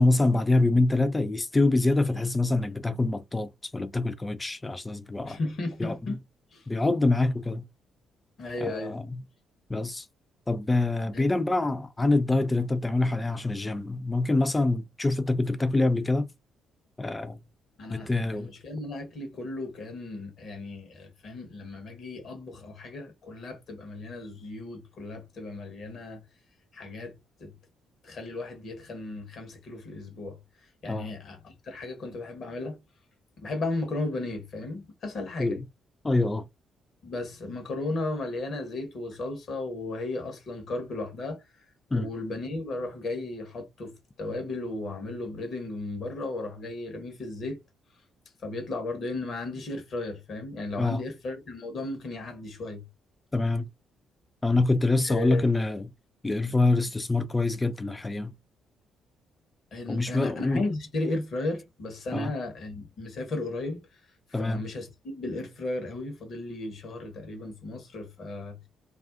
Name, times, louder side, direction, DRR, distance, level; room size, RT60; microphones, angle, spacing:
voice 1, 0.0-5.4 5.8-5.9 6.7-7.6 8.6-9.2 9.7-10.1 10.5-16.3 17.0-17.4 17.9-18.5 30.9-31.1 35.4-35.6 36.0-36.5 41.9-42.1 50.8-51.0 53.3-53.7 54.4-55.9 56.2-58.3 59.9-60.6 62.1-62.3 64.3-64.6, left 2 dB, 20° left, 0.4 m, -25 dB
voice 2, 5.2-6.2 6.5-6.7 8.4-9.0 11.1-11.3 17.8-26.2 26.7-27.6 28.0-32.8 33.4-35.6 37.0-41.6 41.9-47.6 48.4-52.8 55.0-55.5 59.7-68.6, left 2 dB, 50° left, 1.0 m, -35 dB
2.4 x 2.4 x 2.4 m
figure-of-eight pair, 40°, 0 cm